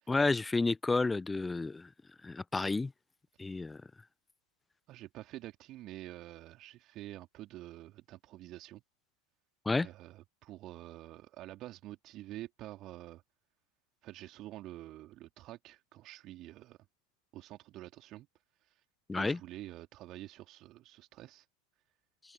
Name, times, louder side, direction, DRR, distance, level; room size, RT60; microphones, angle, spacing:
voice 1, 0.1-1.9 2.2-2.9 3.4-3.8 9.7-9.9 19.1-19.4, left 3 dB, 10° left, 0.8 m, -30 dB
voice 2, 4.9-8.8 9.8-13.2 14.0-16.8 17.3-18.3 18.7-18.8 19.2-21.4, right 15 dB, 35° right, 3.3 m, -48 dB
open air
figure-of-eight pair, 90°, 0 cm